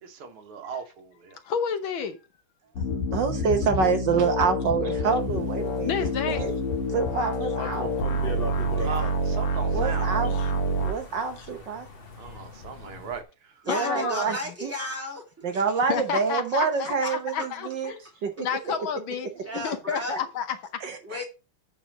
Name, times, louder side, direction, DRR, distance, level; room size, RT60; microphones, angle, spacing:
voice 1, 0.0-1.4 8.8-10.3 12.2-13.5, right 5 dB, 85° right, 2.3 m, -38 dB
voice 2, 1.4-2.2 5.8-6.4 10.3-10.5 11.4-11.5 13.7-14.3 15.9-18.0 18.4-20.8, left 7 dB, 70° left, 1.6 m, -30 dB
sound 1, 2.8-10.9, equal, 85° left, 2.4 m, -27 dB
voice 3, 3.1-5.9 6.3-6.5 6.9-7.9 8.8-8.9 9.7-10.3 10.8-11.9 13.7-14.4 14.6-14.7 15.4-17.9 18.2-18.5 20.1-20.2 20.8-21.2, right 5 dB, 60° right, 1.7 m, -27 dB
sound 2, 5.0-13.2, left 3 dB, 30° left, 1.4 m, -41 dB
voice 4, 13.6-15.6 17.0-17.1 19.4-20.2 21.0-21.2, left 1 dB, 5° right, 2.8 m, -34 dB
8.7 x 4.5 x 6.2 m
omnidirectional pair, 2.4 m